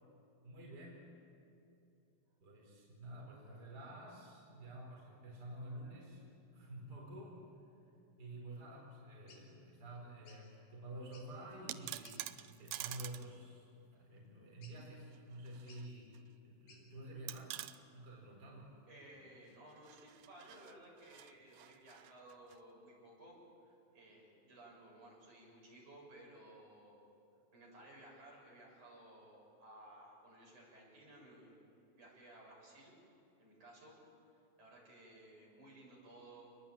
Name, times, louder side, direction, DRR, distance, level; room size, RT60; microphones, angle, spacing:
voice 1, 0.4-1.0 2.4-6.2 6.5-7.4 8.2-12.2 12.5-16.1 16.4-17.6 17.9-18.8, right 1 dB, 25° right, -3 dB, 5.0 m, -50 dB
sound 1, 9.3-9.4 10.3-10.4 11.0-11.4 12.0-12.2 12.7-13.0 14.6-15.0 15.7-15.9 16.7-16.8, left 4 dB, 70° left, 5.6 m, -62 dB
sound 2, 11.5-13.3 13.6-13.7 15.1-15.9 16.1-16.2 17.3-17.8 19.7-22.6, right 14 dB, 85° right, 2.6 m, -48 dB
voice 2, 18.9-27.1 27.5-31.6 31.9-32.9 33.4-34.0 34.6-36.5, right 1 dB, 55° right, -3 dB, 8.6 m, -58 dB
28.5 x 21.0 x 9.0 m, 2.7 s
omnidirectional pair, 4.2 m